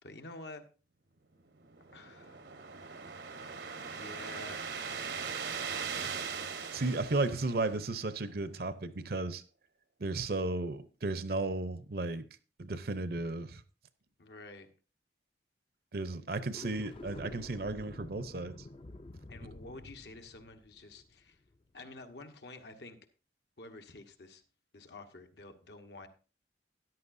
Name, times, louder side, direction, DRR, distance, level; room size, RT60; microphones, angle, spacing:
voice 1, 0.0-0.6 1.9-2.4 3.9-4.7 14.2-14.7 19.3-21.4 21.7-23.0 23.6-24.4 24.7-26.1, left 2 dB, 75° left, 1.2 m, -49 dB
sound 1, 1.6-8.1, right 6 dB, 75° right, 1.0 m, -40 dB
voice 2, 6.7-9.4 10.0-12.2 12.6-13.6 15.9-18.5, right 2 dB, 60° right, 0.7 m, -34 dB
sound 2, 16.4-21.7, left 2 dB, 30° left, 0.4 m, -49 dB
13.5 x 10.5 x 2.6 m
head